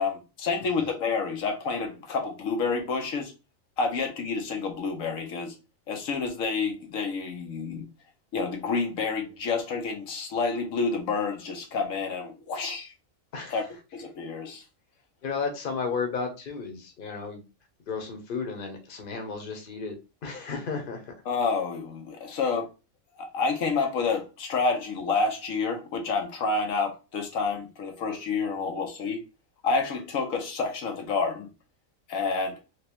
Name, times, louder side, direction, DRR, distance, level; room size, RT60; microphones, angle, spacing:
voice 1, 0.0-3.3 3.8-5.5 5.9-7.9 8.3-12.9 13.5-13.6 13.9-14.6 21.3-22.7 23.2-29.2 29.6-31.5 32.1-32.6, left 4 dB, 80° left, 1.2 m, -29 dB
voice 2, 13.3-13.6 15.2-17.4 17.9-19.9 20.2-21.1 22.3-22.4, left 5 dB, 45° left, 1.0 m, -33 dB
3.3 x 2.9 x 2.9 m
omnidirectional pair, 1.4 m